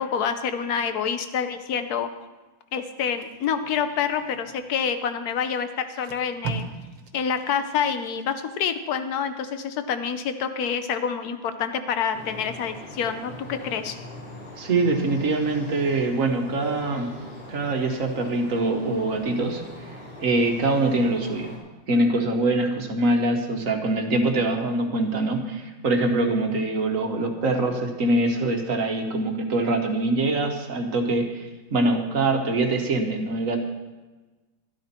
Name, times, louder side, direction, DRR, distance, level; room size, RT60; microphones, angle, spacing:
voice 1, 0.0-2.1 2.7-6.7 7.1-13.9, left 7 dB, 60° left, 9 dB, 1.2 m, -27 dB
Packing tape duct tape, 3.0-4.7 5.4-5.5 5.9-8.8 9.3-9.5, right 5 dB, 75° right, 1.9 m, -39 dB
sound 1, 12.1-21.6, left 1 dB, 20° left, 4.8 m, -41 dB
voice 2, 14.6-17.1 17.5-19.6 20.2-21.5 21.9-33.6, right 2 dB, 45° right, 4 dB, 1.5 m, -24 dB
13.0 x 12.0 x 4.4 m, 1.2 s
omnidirectional pair, 2.1 m